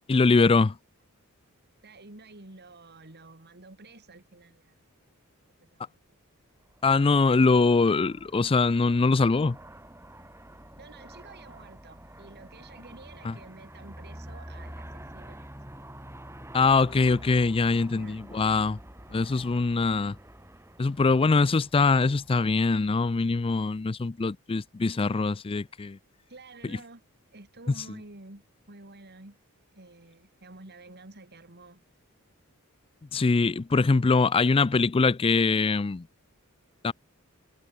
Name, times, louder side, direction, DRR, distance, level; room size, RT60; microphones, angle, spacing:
voice 1, 0.1-0.7 6.8-9.6 13.2-13.3 16.5-18.8 19.1-20.2 20.8-26.0 33.1-36.0 36.8-36.9, left 4 dB, 25° left, 0.4 m, -23 dB
voice 2, 1.8-4.8 5.6-6.0 10.8-15.8 17.9-18.2 26.3-27.0 27.3-29.4 29.7-31.9, right 2 dB, 50° right, 3.1 m, -50 dB
Aircraft, 6.6-23.9, right 1 dB, 10° right, 6.0 m, -48 dB
head